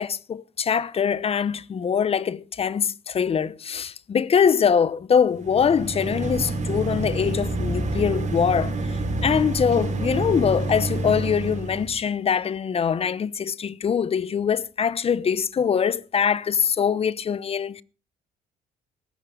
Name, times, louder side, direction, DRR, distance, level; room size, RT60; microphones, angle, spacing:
voice 1, 0.0-17.8, left 7 dB, 35° left, 0.9 m, -23 dB
sound 1, 5.3-12.0, right 2 dB, 45° right, 4.8 m, -28 dB
17.5 x 14.5 x 3.8 m
cardioid pair, 110°, 17 cm